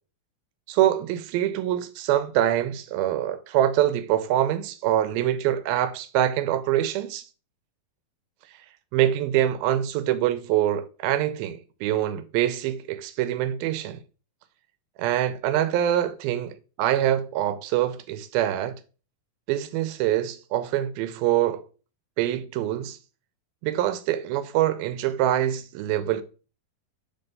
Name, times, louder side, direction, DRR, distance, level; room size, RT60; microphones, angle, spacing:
voice 1, 0.7-7.2 8.9-14.0 15.0-18.8 19.5-21.6 22.2-23.0 23.6-26.2, right 12 dB, 90° right, 2.5 m, -24 dB
5.1 x 4.3 x 5.3 m
omnidirectional pair, 4.1 m